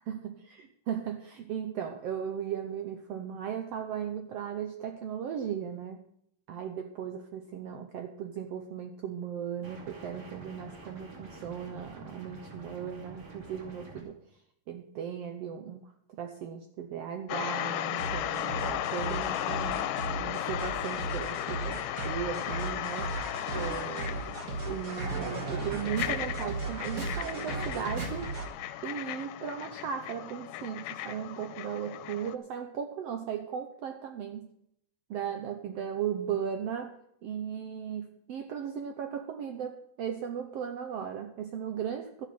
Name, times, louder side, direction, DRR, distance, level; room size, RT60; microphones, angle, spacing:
voice 1, 0.9-6.0 6.5-14.2 14.7-23.1 23.5-24.2 24.7-28.3 28.8-34.5 35.1-36.9 37.2-42.3, right 8 dB, 85° right, 6 dB, 1.3 m, -37 dB
sound 1, 9.6-14.0, right 2 dB, 55° right, 3.8 m, -47 dB
sound 2, 17.3-32.4, left 13 dB, 85° left, 2.3 m, -36 dB
sound 3, 18.0-28.5, right 3 dB, 35° right, 1.5 m, -36 dB
12.0 x 9.5 x 5.9 m, 0.74 s
omnidirectional pair, 3.9 m